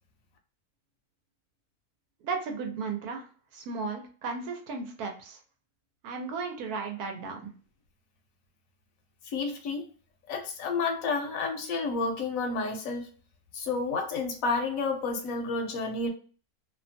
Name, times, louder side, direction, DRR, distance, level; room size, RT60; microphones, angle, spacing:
voice 1, 2.2-3.3 3.5-5.4 6.0-7.5, right 4 dB, 80° right, 3 dB, 1.2 m, -35 dB
voice 2, 9.3-9.8 10.3-13.1 13.5-16.1, left 4 dB, 70° left, 4 dB, 1.0 m, -30 dB
2.8 x 2.2 x 2.6 m, 0.40 s
omnidirectional pair, 1.6 m